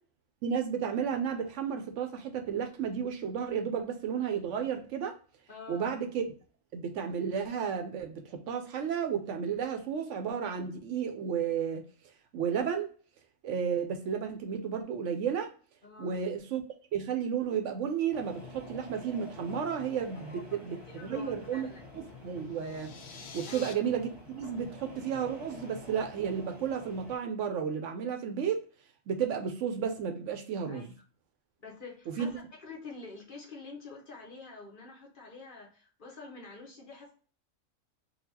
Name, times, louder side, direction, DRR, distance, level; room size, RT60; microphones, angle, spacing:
voice 1, 0.4-5.2 5.7-6.2 6.7-11.8 12.3-12.9 13.4-15.5 16.0-16.6 16.9-21.7 21.9-22.9 23.3-28.6 29.1-30.9 32.2-32.3, right 7 dB, 70° right, 0.9 m, -32 dB
voice 2, 5.5-5.9 15.8-16.2 20.2-21.8 23.5-23.8 30.7-31.1 31.6-37.1, left 3 dB, 45° left, 1.0 m, -47 dB
sound 1, 18.1-27.2, left 2 dB, ahead, 1.2 m, -48 dB
sound 2, 22.5-23.7, left 6 dB, 80° left, 0.4 m, -47 dB
3.9 x 2.3 x 2.6 m
omnidirectional pair, 1.4 m